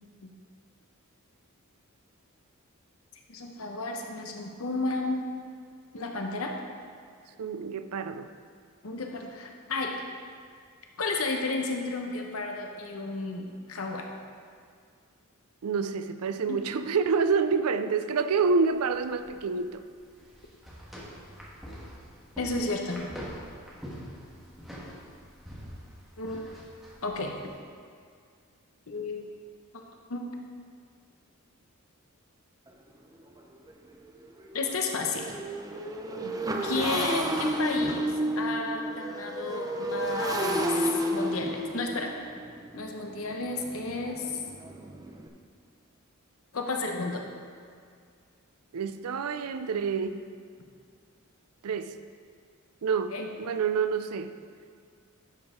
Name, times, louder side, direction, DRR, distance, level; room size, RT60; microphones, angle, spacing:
voice 1, 3.3-5.3 5.9-6.5 8.8-9.9 11.0-14.1 16.5-16.6 22.4-23.0 26.2-26.5 27.0-27.3 28.9-29.3 30.1-30.3 34.5-35.3 36.6-42.1 42.7-44.3 46.5-47.2 53.1-53.3, left 3 dB, 70° left, 0.9 m, -32 dB
voice 2, 7.4-8.3 15.6-19.8 36.2-36.7 48.7-50.2 51.6-52.0 52.8-54.4, right 5 dB, 85° right, 0.5 m, -28 dB
sound 1, 18.7-27.6, equal, ahead, 1.5 m, -45 dB
Motorcycle, 32.7-32.8 33.2-33.4 33.7-45.3, right 1 dB, 15° right, 0.5 m, -32 dB
11.0 x 7.1 x 3.7 m
head